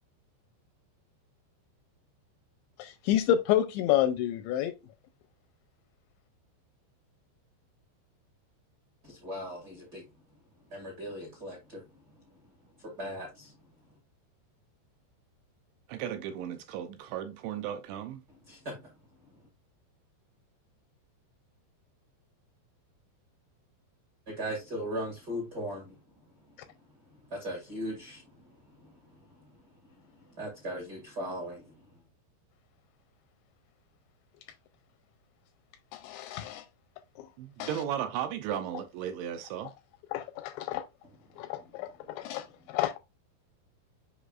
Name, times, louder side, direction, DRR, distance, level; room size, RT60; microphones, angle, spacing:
voice 1, 2.8-4.7 35.9-36.7 37.2-37.3 37.6-37.7 40.1-40.8 41.4-43.0, left 11 dB, 85° left, 2.6 m, -29 dB
voice 2, 9.1-10.0 10.7-11.8 12.8-13.5 18.5-18.8 24.3-25.9 27.3-28.2 30.4-31.6, equal, 40° right, 1.3 m, -37 dB
voice 3, 15.9-18.2 37.4-39.7, right 9 dB, 80° right, 2.7 m, -35 dB
8.1 x 5.1 x 2.4 m
omnidirectional pair, 5.5 m